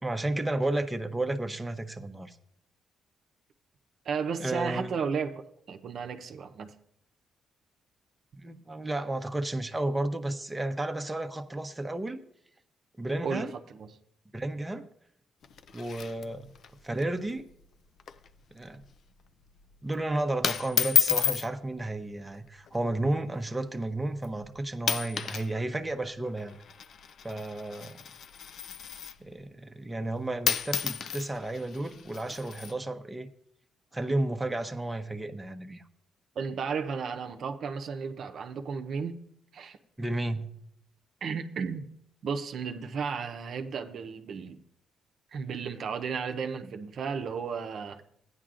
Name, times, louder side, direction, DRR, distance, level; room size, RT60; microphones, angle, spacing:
voice 1, 0.0-2.4 4.4-5.0 8.4-12.2 13.0-13.5 14.3-14.9 15.7-16.5 16.8-17.5 18.5-18.8 19.8-26.5 27.2-28.0 29.2-33.3 33.9-35.8 40.0-40.5, right 2 dB, 10° right, 0.8 m, -32 dB
voice 2, 4.0-6.7 13.2-13.9 36.4-39.2 39.5-39.8 41.2-41.9 42.2-44.6 45.3-48.0, right 6 dB, 60° right, 0.7 m, -34 dB
sound 1, 15.4-16.7 17.0-17.1 17.4-17.6 18.0-18.3 18.7-18.9 19.7-19.9 20.4-21.5 22.5-22.8 23.4-23.5 24.2-24.5 24.8-25.5 25.8-29.3 30.1-30.2 30.4-32.7, left 8 dB, 60° left, 0.5 m, -31 dB
15.0 x 9.7 x 2.5 m
cardioid pair, 90°, 0 cm